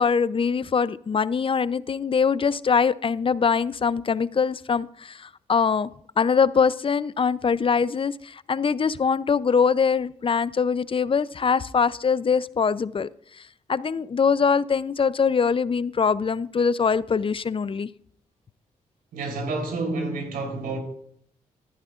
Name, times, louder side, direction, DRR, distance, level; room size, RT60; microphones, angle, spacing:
voice 1, 0.0-5.9 6.2-13.1 13.7-17.9, left 6 dB, 35° left, 0.5 m, -23 dB
voice 2, 19.1-20.8, right 3 dB, 80° right, 3.7 m, -29 dB
14.5 x 11.0 x 2.5 m
supercardioid pair, 50°, 15 cm